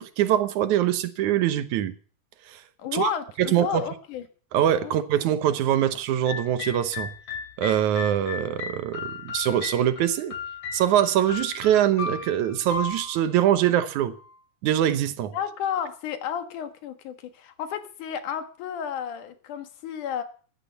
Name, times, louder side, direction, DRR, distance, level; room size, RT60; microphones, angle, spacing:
voice 1, 0.0-1.9 2.5-2.6 2.9-3.1 3.4-3.8 4.5-7.1 7.6-10.3 10.7-14.2 14.6-15.3, right 11 dB, 75° right, 2.4 m, -23 dB
voice 2, 2.8-4.3 4.8-4.9 15.3-20.2, left 8 dB, 90° left, 3.1 m, -32 dB
sound 1, 6.3-14.3, left 5 dB, 60° left, 3.9 m, -36 dB
14.5 x 11.5 x 7.0 m
omnidirectional pair, 3.5 m